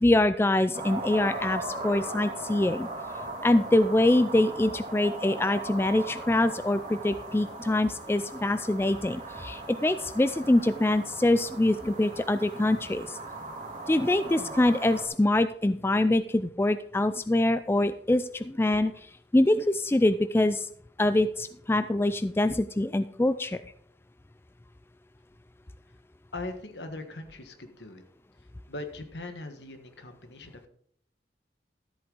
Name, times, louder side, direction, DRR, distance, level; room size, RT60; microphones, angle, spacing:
voice 1, 0.0-2.9 3.4-13.2 13.9-18.9 19.3-20.7 21.0-23.6, left 1 dB, 15° left, 12 dB, 0.3 m, -24 dB
sound 1, 0.7-15.1, right 2 dB, 45° right, 2.4 m, -38 dB
voice 2, 26.3-28.0 28.7-30.7, left 2 dB, 75° left, 7 dB, 1.5 m, -40 dB
13.5 x 8.0 x 4.0 m, 0.64 s
head